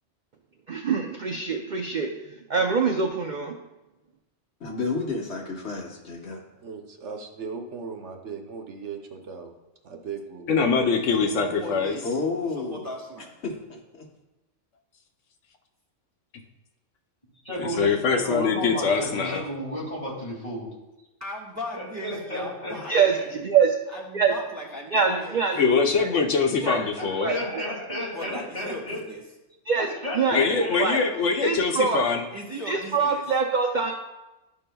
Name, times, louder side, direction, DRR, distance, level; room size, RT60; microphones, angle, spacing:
voice 1, 0.7-2.1 2.5-3.5 22.9-23.7 24.1-24.3 24.9-26.1 26.6-26.8 27.2-27.4 29.7-29.9 30.1-30.4 30.8-31.0 31.4-32.0 32.7-33.9, right 5 dB, 55° right, 2 dB, 0.5 m, -24 dB
voice 2, 4.6-6.4 12.0-12.9 13.4-14.1, left 3 dB, 60° left, 0 dB, 1.3 m, -31 dB
voice 3, 6.6-9.6 9.8-10.5, right 5 dB, 70° right, 4 dB, 1.1 m, -37 dB
voice 4, 10.5-12.0 17.6-19.4 25.6-27.3 30.3-32.3, left 5 dB, 80° left, 4 dB, 1.0 m, -23 dB
voice 5, 11.1-13.3 21.2-23.3 23.9-25.4 28.1-29.2 32.3-33.2, right 1 dB, 15° right, -5 dB, 1.3 m, -38 dB
voice 6, 17.4-20.7 21.7-23.0 27.0-29.0 29.8-31.1, equal, 25° left, -5 dB, 2.3 m, -33 dB
12.0 x 5.6 x 2.2 m, 1.0 s
omnidirectional pair, 1.3 m